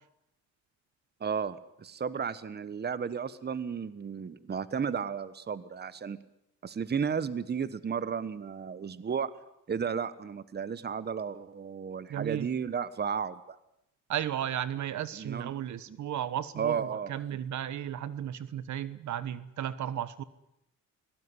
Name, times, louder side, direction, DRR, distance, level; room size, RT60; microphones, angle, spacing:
voice 1, 1.2-6.2 6.6-9.3 9.7-13.6 15.2-15.5 16.6-17.1, right 6 dB, 35° right, 16 dB, 1.2 m, -33 dB
voice 2, 12.1-12.5 14.1-20.2, right 10 dB, 70° right, 16 dB, 1.4 m, -34 dB
22.0 x 18.5 x 9.8 m, 0.82 s
cardioid pair, 90°, 30 cm